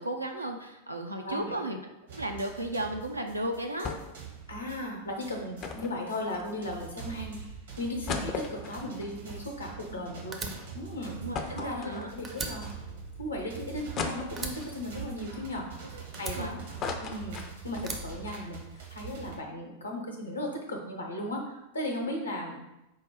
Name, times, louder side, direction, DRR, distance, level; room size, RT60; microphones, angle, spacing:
voice 1, 0.0-1.8 2.1-4.0 11.2-12.1 15.9-16.0 16.3-16.5, right 1 dB, 85° right, 3 dB, 0.5 m, -34 dB
voice 2, 1.2-1.6 4.5-7.4 7.8-10.4 10.7-11.2 11.5-12.7 13.2-16.6 17.0-22.6, left 1 dB, 75° left, 1 dB, 0.8 m, -36 dB
sound 1, 2.1-19.3, right 6 dB, 65° right, 1.1 m, -44 dB
sound 2, 3.8-4.3 4.5-4.6 5.6-6.9 7.4-7.5 7.8-10.3 10.6-10.7 11.3-12.5 13.0-13.1 14.0-14.8 15.3-16.3 16.6-17.9 18.3-18.4 18.6-18.8, left 5 dB, 30° left, 0.4 m, -37 dB
Fire, 10.3-11.9 12.2-14.0 14.4-15.7 16.1-17.3 17.8-19.0, right 3 dB, 20° right, 0.5 m, -40 dB
4.5 x 2.2 x 4.5 m, 0.92 s
figure-of-eight pair, 90°, 0 cm